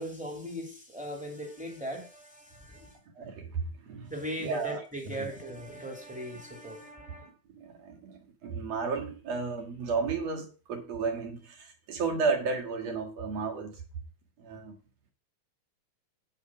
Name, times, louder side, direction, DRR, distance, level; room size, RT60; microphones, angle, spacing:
voice 1, 0.0-3.0 4.1-7.3, equal, 5° right, 2.2 m, -39 dB
voice 2, 3.2-4.1 4.4-5.3 7.3-13.8 14.4-14.8, right 4 dB, 60° right, 3.0 m, -33 dB
9.9 x 5.5 x 6.2 m
omnidirectional pair, 3.4 m